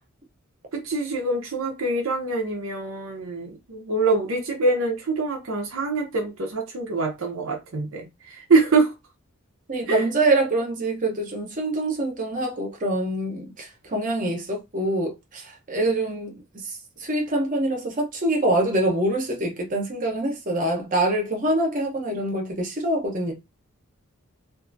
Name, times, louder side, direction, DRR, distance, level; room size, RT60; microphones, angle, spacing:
voice 1, 0.7-8.9 9.9-10.1, right 3 dB, 70° right, 0.7 m, -24 dB
voice 2, 9.7-23.3, right 1 dB, 40° right, 0.8 m, -25 dB
2.6 x 2.4 x 2.6 m
head